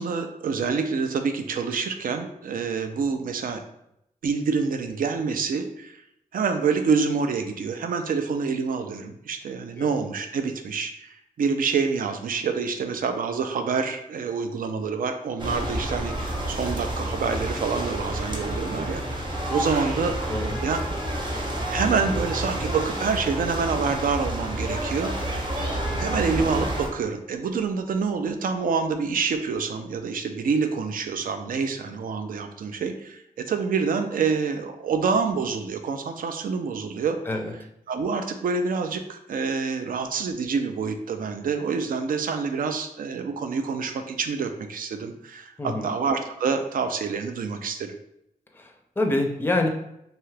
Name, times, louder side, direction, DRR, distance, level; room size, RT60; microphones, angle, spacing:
voice 1, 0.0-3.6 4.2-6.0 6.3-20.8 21.3-25.5 26.0-37.2 37.9-47.9, right 5 dB, 70° right, 7 dB, 0.4 m, -27 dB
sound 1, 15.4-26.9, right 1 dB, 30° right, 0.8 m, -29 dB
Wind instrument woodwind instrument, 16.1-20.2, equal, 80° left, 0.4 m, -45 dB
sound 2, 19.7-21.6, right 2 dB, 85° right, 1.0 m, -40 dB
voice 2, 48.6-49.7, left 2 dB, 15° left, 3 dB, 0.5 m, -26 dB
2.8 x 2.3 x 3.2 m, 0.80 s
cardioid pair, 70°, 15 cm